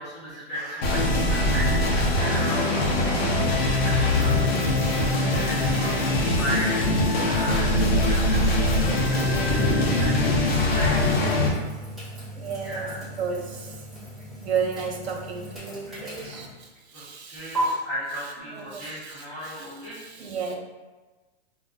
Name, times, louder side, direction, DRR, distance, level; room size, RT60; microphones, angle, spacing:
voice 1, 0.0-3.1 3.5-11.1 12.6-13.0 16.0-16.4 16.9-20.0, equal, 20° left, -9 dB, 1.1 m, -36 dB
voice 2, 0.5-0.9 12.4-12.9 13.2-14.0 14.4-17.8 18.5-20.5, right 6 dB, 85° right, 2 dB, 0.7 m, -33 dB
sound 1, 0.8-11.5, left 1 dB, 65° left, 0.8 m, -22 dB
sound 2, 4.5-17.6, equal, ahead, 0.7 m, -42 dB
Bass guitar, 9.3-15.6, right 2 dB, 40° left, 1.2 m, -39 dB
2.3 x 2.2 x 3.7 m, 1.2 s
hypercardioid pair, 160°, 32 cm